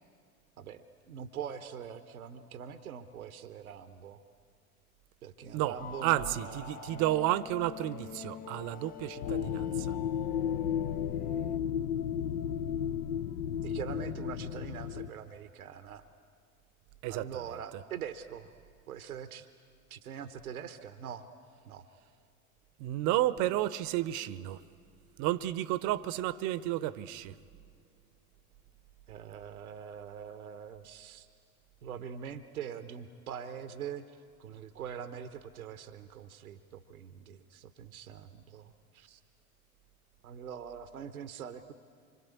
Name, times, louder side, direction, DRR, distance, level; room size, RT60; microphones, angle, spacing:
voice 1, 0.6-4.2 5.2-7.0 13.6-16.0 17.1-18.5 18.9-19.5 19.9-21.3 21.7-21.9 29.1-31.3 31.8-34.1 34.4-39.2 40.2-41.7, right 8 dB, 75° right, 1.0 m, -43 dB
voice 2, 5.5-9.9 17.0-17.5 17.7-17.8 22.8-24.6 25.2-27.4, right 15 dB, 45° right, 0.9 m, -32 dB
sound 1, 5.8-11.6, left 7 dB, 20° left, 0.6 m, -44 dB
sound 2, 9.2-15.1, left 9 dB, 55° left, 0.9 m, -33 dB
25.5 x 25.0 x 8.5 m
figure-of-eight pair, 80°, 43 cm